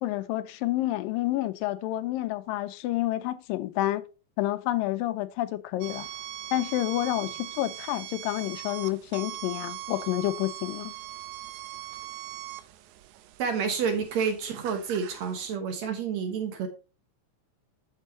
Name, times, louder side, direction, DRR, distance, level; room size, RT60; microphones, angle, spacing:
voice 1, 0.0-4.0 4.4-6.1 6.5-10.9, left 15 dB, 85° left, 2.3 m, -29 dB
sound 1, 5.8-15.6, right 13 dB, 80° right, 1.8 m, -41 dB
voice 2, 13.4-16.7, right 6 dB, 60° right, 2.2 m, -29 dB
9.2 x 7.4 x 3.0 m
omnidirectional pair, 4.0 m